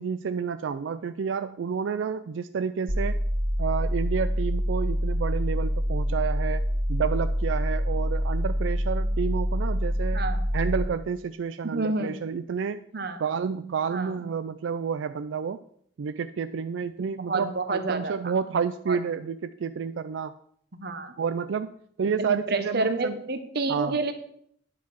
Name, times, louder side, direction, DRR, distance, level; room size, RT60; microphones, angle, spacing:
voice 1, 0.0-3.2 3.6-6.6 6.9-10.2 10.5-12.9 13.2-15.6 16.0-20.3 21.2-21.7 22.0-23.2 23.7-24.0, right 6 dB, 90° right, 11 dB, 0.4 m, -30 dB
sound 1, 2.9-10.9, equal, 75° right, 2.3 m, -26 dB
voice 2, 11.6-12.1 12.9-13.2 13.9-14.2 17.3-18.3 18.9-19.0 20.7-21.1 22.2-24.1, right 3 dB, 60° right, 9 dB, 1.1 m, -29 dB
9.9 x 5.8 x 6.2 m, 0.66 s
head